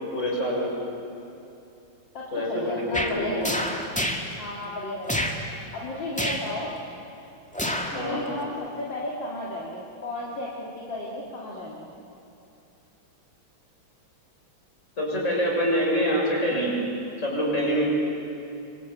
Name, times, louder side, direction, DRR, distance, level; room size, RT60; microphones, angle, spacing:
voice 1, 0.1-0.7 2.3-3.3 7.9-8.2 15.0-16.7 17.2-17.8, equal, 35° left, -2 dB, 6.9 m, -25 dB
voice 2, 2.1-3.7 4.4-6.7 8.0-11.9, left 1 dB, 60° left, -4 dB, 3.4 m, -34 dB
sound 1, 2.9-3.2 3.4-4.3 5.1-5.4 6.2-6.5 7.5-8.0 8.4-8.5, equal, 5° left, 1.6 m, -27 dB
27.5 x 24.5 x 8.5 m, 2.8 s
omnidirectional pair, 2.3 m